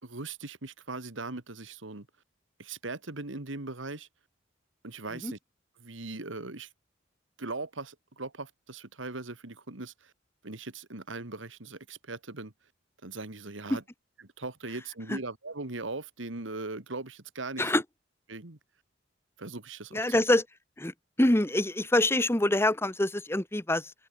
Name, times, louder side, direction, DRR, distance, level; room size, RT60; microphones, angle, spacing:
voice 1, 0.0-2.1 2.6-4.1 4.8-5.4 5.8-6.7 7.4-10.1 10.4-12.5 13.0-13.8 14.2-17.7 18.3-18.6 19.4-20.0, right 3 dB, 85° right, 2.1 m, -39 dB
voice 2, 19.9-20.4 20.8-23.9, left 1 dB, 15° left, 1.1 m, -25 dB
head